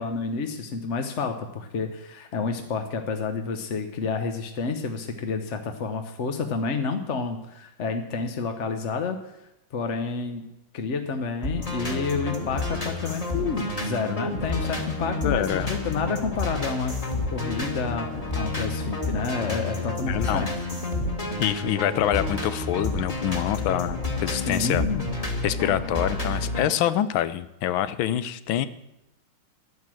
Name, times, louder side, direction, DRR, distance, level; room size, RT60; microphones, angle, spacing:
voice 1, 0.0-9.2 9.7-10.4 10.7-20.5 24.3-25.0, left 4 dB, 50° left, 6 dB, 0.9 m, -29 dB
sound 1, 11.4-26.7, left 2 dB, 20° left, 1.7 m, -30 dB
voice 2, 15.2-15.7 20.1-20.5 21.4-24.8 25.4-28.7, left 11 dB, 80° left, 14 dB, 1.5 m, -26 dB
11.0 x 9.5 x 7.6 m, 0.90 s
omnidirectional pair, 2.2 m